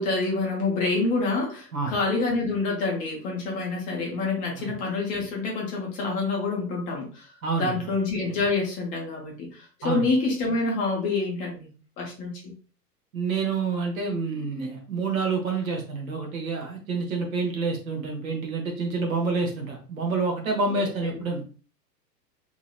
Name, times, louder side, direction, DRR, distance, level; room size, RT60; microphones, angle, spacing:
voice 1, 0.0-11.7 12.0-12.5 20.7-21.2, left 3 dB, 15° left, 0 dB, 0.6 m, -27 dB
voice 2, 13.1-21.4, right 4 dB, 55° right, 1 dB, 1.1 m, -28 dB
2.9 x 2.8 x 2.4 m, 0.37 s
figure-of-eight pair, 100°, 49 cm